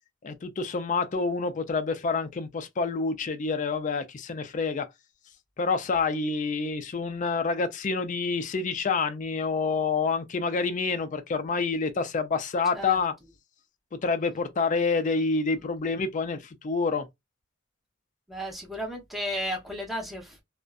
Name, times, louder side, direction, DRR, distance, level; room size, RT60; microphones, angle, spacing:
voice 1, 0.2-4.9 5.6-13.1 14.0-17.1, left 4 dB, 35° left, 0.4 m, -27 dB
voice 2, 18.3-20.4, equal, ahead, 0.8 m, -34 dB
2.5 x 2.1 x 2.3 m
head